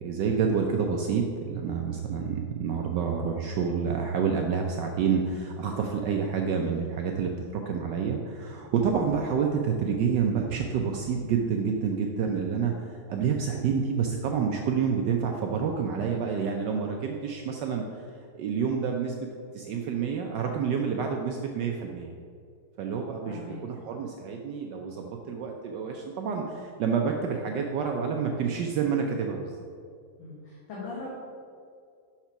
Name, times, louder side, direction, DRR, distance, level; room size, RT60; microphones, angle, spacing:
voice 1, 0.0-18.1 18.3-19.3 19.5-22.1 22.8-29.6, right 6 dB, 75° right, 2 dB, 1.0 m, -28 dB
voice 2, 23.2-23.6 30.2-31.1, left 3 dB, 65° left, -7 dB, 2.1 m, -40 dB
5.9 x 4.3 x 5.8 m, 2.2 s
omnidirectional pair, 2.3 m